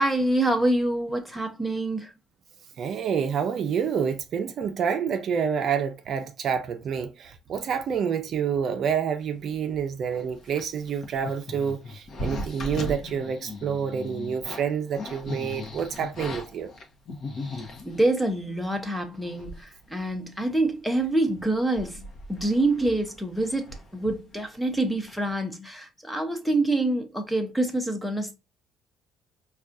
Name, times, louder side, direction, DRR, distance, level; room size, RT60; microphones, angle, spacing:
voice 1, 0.0-2.1 17.4-22.0 22.3-28.3, right 2 dB, ahead, 0.7 m, -26 dB
voice 2, 2.8-16.7, right 7 dB, 45° right, 0.5 m, -28 dB
sound 1, 10.1-18.1 18.8-18.9 19.2-19.8 20.1-20.2 20.6-20.9 21.3-24.8 25.1-25.3, left 1 dB, 45° left, 0.8 m, -38 dB
4.7 x 2.3 x 2.6 m
cardioid pair, 135°, 0 cm